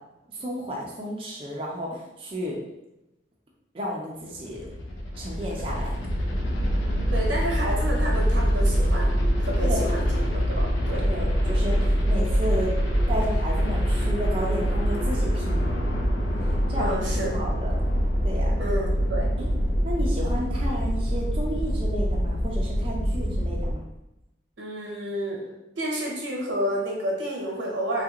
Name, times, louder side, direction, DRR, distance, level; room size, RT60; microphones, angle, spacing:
voice 1, 0.3-2.6 3.7-4.6 5.2-5.9 9.6-9.8 11.0-12.7 13.1-15.7 16.5-17.0 17.3-17.7 18.2-18.6 19.4-19.5 19.8-23.8, equal, 30° right, -3 dB, 0.5 m, -32 dB
sound 1, 4.3-23.7, equal, 90° left, 0.6 m, -24 dB
voice 2, 7.1-11.1 16.8-17.3 18.6-19.3 24.6-28.0, equal, 90° right, -2 dB, 0.9 m, -30 dB
3.2 x 2.4 x 2.8 m, 0.93 s
head